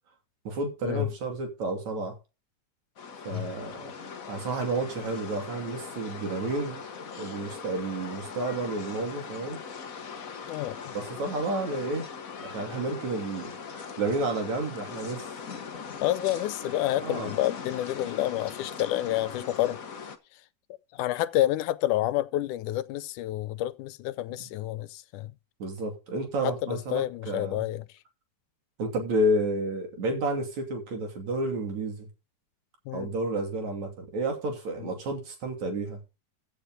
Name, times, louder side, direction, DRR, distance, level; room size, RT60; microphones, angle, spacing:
voice 1, 0.5-2.2 3.3-3.9 4.3-6.8 7.2-9.6 10.9-12.1 12.4-15.3 16.9-17.4 24.4-24.5 25.6-27.7 28.8-32.1 32.9-36.0, right 2 dB, 65° right, 4.1 m, -31 dB
sound 1, 3.0-20.2, left 6 dB, 50° left, 1.0 m, -40 dB
voice 2, 16.0-19.8 20.9-25.3 26.4-27.9 32.9-33.1 34.8-34.9, left 14 dB, 90° left, 2.3 m, -29 dB
15.0 x 7.2 x 3.7 m
omnidirectional pair, 3.5 m